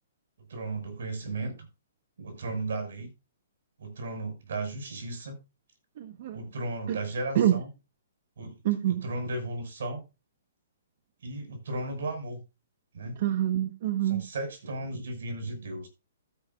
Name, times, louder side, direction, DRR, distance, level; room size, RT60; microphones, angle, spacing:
voice 1, 0.5-1.5 2.2-3.1 3.8-5.4 6.3-7.7 8.4-8.6 9.0-10.0 11.2-12.4 12.9-13.2 14.0-15.9, right 2 dB, 75° right, 6 dB, 5.9 m, -35 dB
voice 2, 6.0-6.4 6.9-7.0 7.3-7.6 8.6-9.0 13.2-14.2, right 11 dB, 50° right, 8 dB, 1.2 m, -26 dB
15.0 x 9.9 x 2.5 m, 0.27 s
hypercardioid pair, 155°, 0 cm